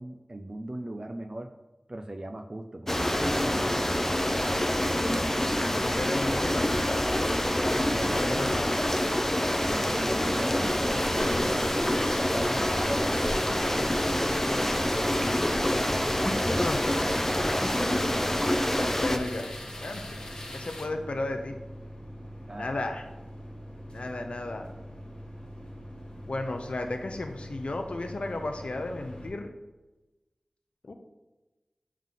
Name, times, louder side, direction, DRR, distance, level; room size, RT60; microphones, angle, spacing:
voice 1, 0.0-1.5 1.9-4.0 7.9-8.4 9.6-13.6 22.5-22.8, right 1 dB, 40° right, 4 dB, 0.4 m, -38 dB
sound 1, 2.9-19.2, left 1 dB, 15° left, 0.5 m, -26 dB
voice 2, 5.8-7.2 8.0-8.9 16.6-16.9 19.0-19.5 19.8-20.2 20.5-21.5 22.6-23.0 23.9-24.7 26.3-29.5 30.8-30.9, left 2 dB, 70° left, 5 dB, 0.5 m, -34 dB
sound 2, 10.6-20.9, left 1 dB, 35° left, 1.0 m, -40 dB
sound 3, 11.3-29.3, equal, 55° left, 1.6 m, -44 dB
7.2 x 3.7 x 3.7 m, 1.1 s
wide cardioid pair, 45°, 2 cm